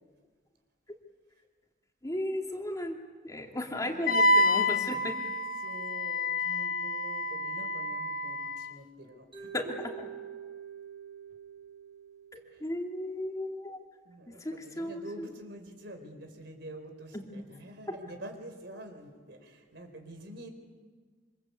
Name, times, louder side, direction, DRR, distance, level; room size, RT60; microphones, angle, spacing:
voice 1, 2.0-3.0 3.2-5.2 9.5-9.6 10.0-10.1 12.6-13.8 14.3-15.3 17.1-17.2 17.9-18.0, left 1 dB, 20° left, 1 dB, 2.7 m, -35 dB
voice 2, 3.8-4.7 5.6-9.9 12.5-12.6 14.0-20.5, right 1 dB, 65° right, 6 dB, 4.5 m, -47 dB
Wind instrument woodwind instrument, 4.1-8.7, left 1 dB, 50° left, 1.1 m, -28 dB
Mallet percussion, 9.3-13.4, right 8 dB, 30° right, 4.6 m, -46 dB
27.0 x 25.5 x 8.4 m, 1.5 s
head